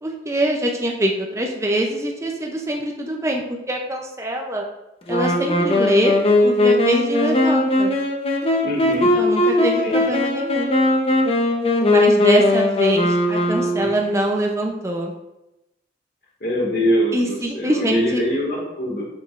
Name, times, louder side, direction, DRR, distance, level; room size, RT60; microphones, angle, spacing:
voice 1, 0.0-4.7 5.1-6.1 6.4-7.9 9.0-10.7 11.8-15.1 17.1-18.2, right 1 dB, 15° right, 1 dB, 0.5 m, -23 dB
Wind instrument woodwind instrument, 5.1-14.1, left 2 dB, 35° left, 0.8 m, -19 dB
voice 2, 8.6-9.1 9.8-10.0 13.8-13.9 16.4-19.1, equal, 55° left, -3 dB, 1.9 m, -23 dB
6.5 x 6.3 x 2.5 m, 0.93 s
head